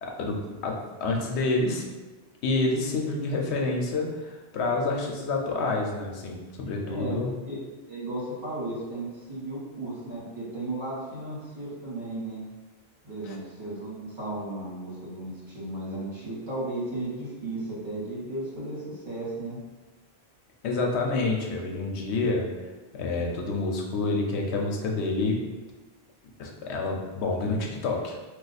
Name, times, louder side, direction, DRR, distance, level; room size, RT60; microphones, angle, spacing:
voice 1, 0.0-1.8 2.4-7.3 13.2-13.4 20.6-22.5 22.9-25.4 26.4-28.2, left 3 dB, 85° left, 0 dB, 0.9 m, -28 dB
voice 2, 6.8-7.1 7.5-7.6 7.9-12.4 13.0-19.6, right 2 dB, 45° right, -7 dB, 1.2 m, -35 dB
2.4 x 2.3 x 3.9 m, 1.2 s
omnidirectional pair, 1.1 m